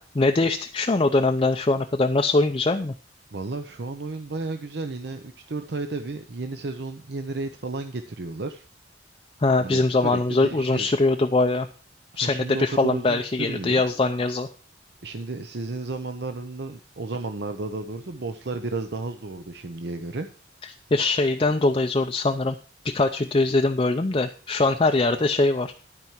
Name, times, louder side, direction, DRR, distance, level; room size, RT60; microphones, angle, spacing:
voice 1, 0.0-2.9 9.4-11.7 12.2-14.5 20.9-22.5 22.8-25.7, left 2 dB, 30° left, 5 dB, 0.5 m, -22 dB
voice 2, 3.3-8.6 9.6-10.9 12.2-13.8 15.0-20.3, right 3 dB, 60° right, 7 dB, 0.7 m, -33 dB
12.0 x 4.7 x 7.2 m, 0.39 s
head